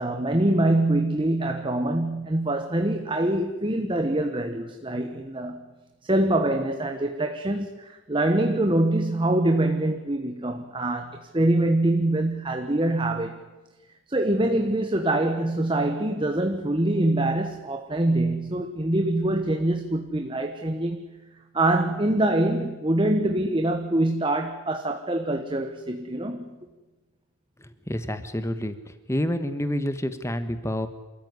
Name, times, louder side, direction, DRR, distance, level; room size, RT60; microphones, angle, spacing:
voice 1, 0.0-5.7 6.0-13.4 14.1-21.2 21.5-26.6, right 1 dB, 25° right, 6 dB, 1.2 m, -24 dB
voice 2, 27.9-28.7 29.1-30.9, equal, 15° left, 11 dB, 1.4 m, -28 dB
28.0 x 14.0 x 9.6 m, 1.2 s
head